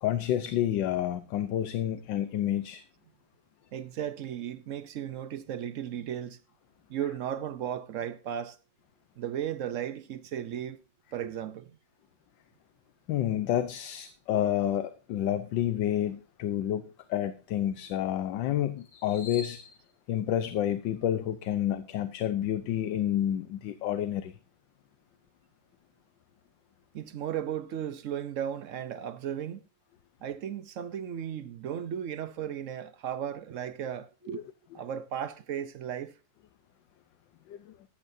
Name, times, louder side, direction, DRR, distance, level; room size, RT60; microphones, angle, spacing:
voice 1, 0.0-2.8 13.1-19.8 20.1-24.3 34.3-34.4 37.5-37.8, left 11 dB, 75° left, 1.4 m, -29 dB
voice 2, 3.7-6.4 6.9-8.6 9.2-10.8 11.1-11.8 26.9-29.6 30.2-34.4 34.7-36.1, right 9 dB, 65° right, 0.7 m, -35 dB
14.5 x 12.0 x 2.6 m
omnidirectional pair, 2.0 m